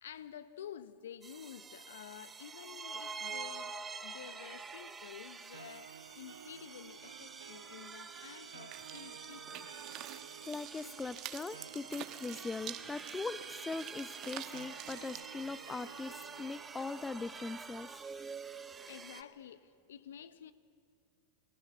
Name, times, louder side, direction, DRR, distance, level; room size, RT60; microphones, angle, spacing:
voice 1, 0.0-9.7 18.9-20.5, left 9 dB, 80° left, 0.9 m, -50 dB
sound 1, 1.2-19.2, right 5 dB, 20° right, 1.3 m, -47 dB
sound 2, 5.5-17.5, right 8 dB, 85° right, 0.5 m, -54 dB
sound 3, 8.7-15.2, right 14 dB, 45° right, 1.2 m, -48 dB
voice 2, 10.5-18.0, left 4 dB, 15° left, 0.7 m, -41 dB
28.0 x 17.0 x 7.3 m
hypercardioid pair, 95°, 0 cm